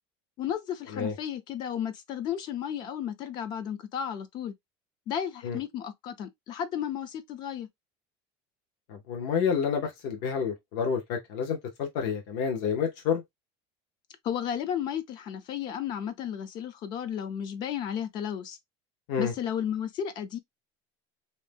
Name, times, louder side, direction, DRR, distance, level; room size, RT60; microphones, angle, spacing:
voice 1, 0.4-4.5 5.1-7.7 14.2-18.6 19.2-20.4, left 9 dB, 30° left, 0.4 m, -33 dB
voice 2, 8.9-13.2 19.1-19.3, left 6 dB, 55° left, 0.8 m, -29 dB
2.7 x 2.1 x 3.3 m
cardioid pair, 175°, 14 cm